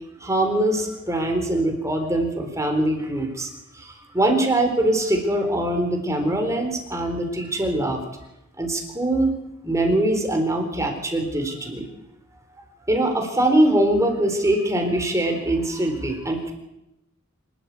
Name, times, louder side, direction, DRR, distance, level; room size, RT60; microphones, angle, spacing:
voice 1, 0.2-3.5 3.7-8.0 8.6-9.3 9.6-11.9 12.9-16.5, right 1 dB, 15° right, 4 dB, 4.0 m, -22 dB
26.0 x 13.0 x 8.4 m, 0.90 s
head